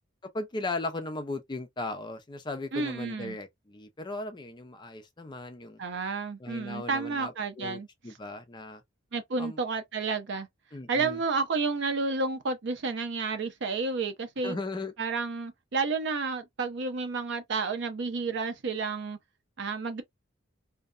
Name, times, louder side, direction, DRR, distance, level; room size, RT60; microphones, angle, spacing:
voice 1, 0.3-5.8 6.4-8.8 9.4-9.6 10.7-11.2 14.4-14.9, left 2 dB, 25° left, 0.4 m, -37 dB
voice 2, 2.7-3.4 5.8-7.9 9.1-10.5 10.9-14.6 15.0-19.2 19.6-20.0, right 4 dB, 65° right, 0.6 m, -31 dB
2.7 x 2.1 x 2.4 m
head